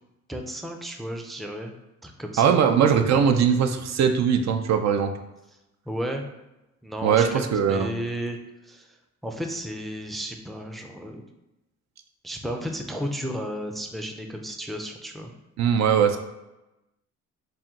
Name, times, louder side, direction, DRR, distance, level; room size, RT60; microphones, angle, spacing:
voice 1, 0.3-1.7 2.0-2.6 5.9-6.2 6.8-8.4 8.6-9.0 9.2-11.2 12.2-15.3, equal, ahead, 3 dB, 0.4 m, -33 dB
voice 2, 2.4-5.1 7.0-7.9 15.6-16.2, right 7 dB, 60° right, 7 dB, 0.5 m, -20 dB
4.3 x 2.2 x 3.6 m, 0.96 s
cardioid pair, 90°, 30 cm